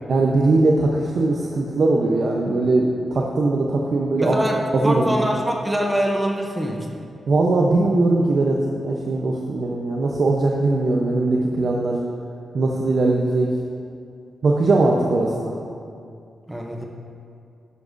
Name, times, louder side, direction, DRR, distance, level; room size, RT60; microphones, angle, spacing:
voice 1, 0.1-4.4 4.7-5.3 7.3-12.0 12.5-13.5 14.4-15.5, right 2 dB, 50° right, -1 dB, 0.8 m, -20 dB
voice 2, 4.2-7.0 16.5-16.8, equal, 10° right, 0 dB, 0.7 m, -24 dB
12.5 x 11.0 x 2.6 m, 2.4 s
wide cardioid pair, 165°, 0 cm